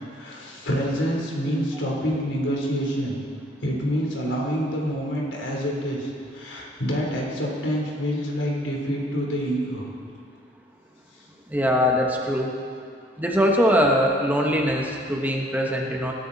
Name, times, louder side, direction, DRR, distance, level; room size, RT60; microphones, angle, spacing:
voice 1, 0.1-3.2 3.6-9.9, equal, 80° left, -2 dB, 3.8 m, -27 dB
voice 2, 11.5-12.5 13.2-16.1, equal, 10° right, 0 dB, 1.3 m, -22 dB
22.5 x 13.0 x 4.2 m, 2.3 s
head